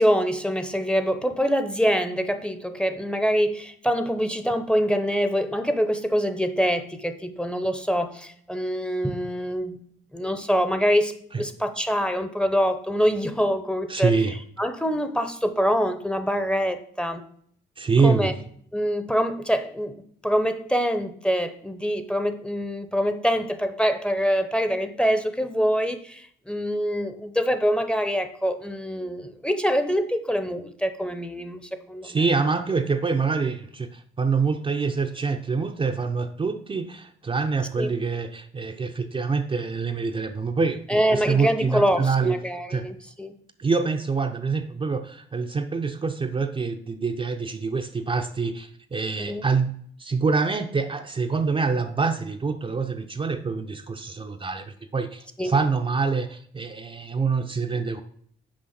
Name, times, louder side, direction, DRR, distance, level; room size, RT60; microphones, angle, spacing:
voice 1, 0.0-9.8 10.1-14.1 14.6-17.2 18.0-18.3 18.7-20.0 20.2-32.2 37.8-37.9 40.9-43.3 49.2-49.4 55.4-55.5, equal, 5° left, 9 dB, 0.8 m, -25 dB
voice 2, 13.9-14.4 17.8-18.3 32.0-42.4 42.7-42.9 43.6-58.0, right 4 dB, 25° right, 5 dB, 0.6 m, -25 dB
6.4 x 5.1 x 5.9 m, 0.62 s
cardioid pair, 90°, 20 cm